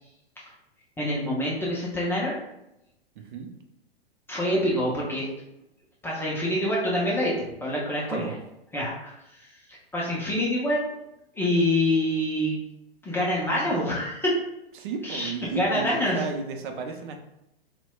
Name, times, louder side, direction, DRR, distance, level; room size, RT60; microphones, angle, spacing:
voice 1, 1.0-2.4 4.3-5.3 6.0-8.3 8.7-9.1 9.9-10.9 11.4-12.6 13.0-14.4 15.0-16.2, left 1 dB, 10° left, -6 dB, 0.4 m, -26 dB
voice 2, 3.2-3.5 8.1-8.4 14.8-17.2, right 4 dB, 55° right, 5 dB, 0.6 m, -33 dB
4.0 x 2.1 x 2.3 m, 0.86 s
hypercardioid pair, 120°, 30 cm